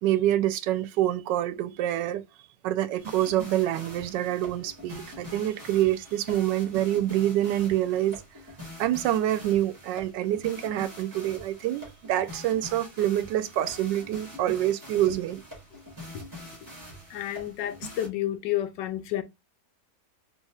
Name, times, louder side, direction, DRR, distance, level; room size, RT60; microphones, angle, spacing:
voice 1, 0.0-2.2 2.6-8.2 8.8-15.4, right 13 dB, 85° right, 1.3 m, -26 dB
sound 1, 3.0-18.1, right 1 dB, 10° right, 2.1 m, -44 dB
voice 2, 17.1-19.2, left 12 dB, 85° left, 1.3 m, -30 dB
4.2 x 3.4 x 2.3 m
omnidirectional pair, 1.9 m